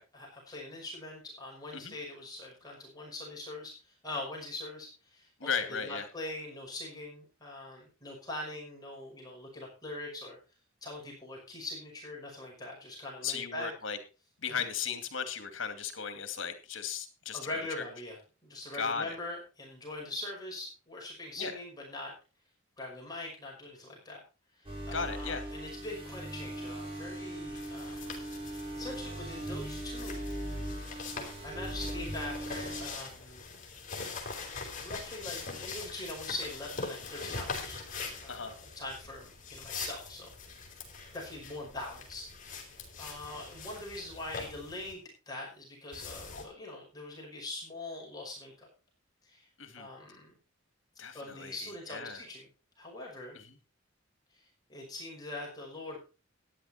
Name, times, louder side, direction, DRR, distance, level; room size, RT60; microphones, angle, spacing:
voice 1, 0.1-5.5 5.8-10.4 10.8-13.7 14.5-14.6 17.3-18.2 18.4-22.1 22.8-24.2 24.5-28.0 28.8-30.2 30.6-31.0 31.4-33.4 34.8-37.8 38.2-40.7 41.1-42.3 42.6-48.7 49.2-49.5 49.8-50.3 51.1-52.5 52.8-53.4 54.3-56.0, left 2 dB, 20° left, -2 dB, 5.5 m, -42 dB
voice 2, 5.4-6.1 13.2-14.0 14.4-17.8 18.7-19.2 21.4-21.6 24.9-25.4 38.3-38.6 49.6-49.9 51.0-52.2 53.3-53.6, left 6 dB, 65° left, 8 dB, 2.4 m, -36 dB
sound 1, 24.6-32.9, right 1 dB, 25° right, 5.6 m, -39 dB
sound 2, 27.6-44.9 45.9-46.5, left 4 dB, 40° left, 4.5 m, -43 dB
14.5 x 10.5 x 4.3 m, 0.33 s
head